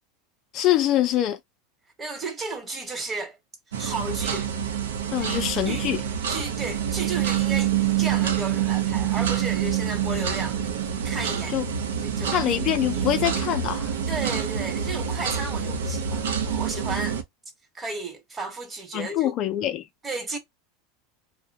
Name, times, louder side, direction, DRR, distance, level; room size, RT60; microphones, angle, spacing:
voice 1, 0.5-1.4 5.1-6.0 11.5-11.6 12.3-13.9 18.9-19.8, left 12 dB, 50° left, 0.4 m, -24 dB
voice 2, 2.0-3.4 3.8-4.5 5.2-5.3 5.6-5.9 6.3-10.6 11.0-11.6 12.0-12.4 12.8-13.1 14.1-17.2 17.7-19.3 20.0-20.4, right 3 dB, 20° right, 1.1 m, -33 dB
sound 1, 3.7-17.2, right 9 dB, 85° right, 0.6 m, -26 dB
2.7 x 2.1 x 2.7 m
hypercardioid pair, 105°, 0 cm